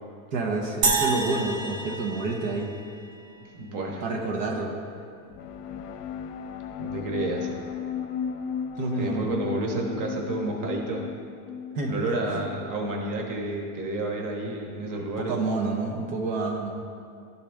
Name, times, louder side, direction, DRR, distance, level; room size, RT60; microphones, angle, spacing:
voice 1, 0.3-2.7 4.0-4.8 8.8-9.3 11.7-12.4 15.2-16.7, right 3 dB, 75° right, 0 dB, 1.1 m, -29 dB
sound 1, 0.8-3.3, right 4 dB, 55° right, 1.0 m, -28 dB
voice 2, 3.4-4.0 6.8-7.6 9.0-11.0 11.9-15.3, right 2 dB, 40° right, 1 dB, 1.3 m, -30 dB
sound 2, 5.3-12.9, left 7 dB, 55° left, 0.7 m, -35 dB
11.5 x 4.2 x 3.5 m, 2.3 s
supercardioid pair, 115°, 48 cm